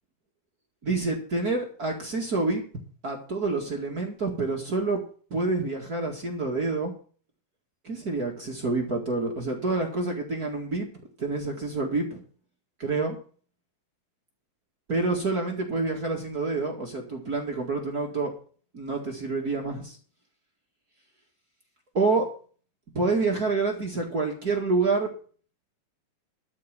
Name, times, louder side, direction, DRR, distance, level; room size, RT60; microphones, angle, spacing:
voice 1, 0.8-2.6 3.0-5.0 5.3-6.9 7.8-10.9 11.2-12.2 12.8-13.2 14.9-18.3 18.7-20.0 21.9-22.2 22.9-25.1, right 3 dB, 30° right, -1 dB, 2.0 m, -27 dB
12.5 x 5.3 x 8.9 m, 0.43 s
omnidirectional pair, 4.0 m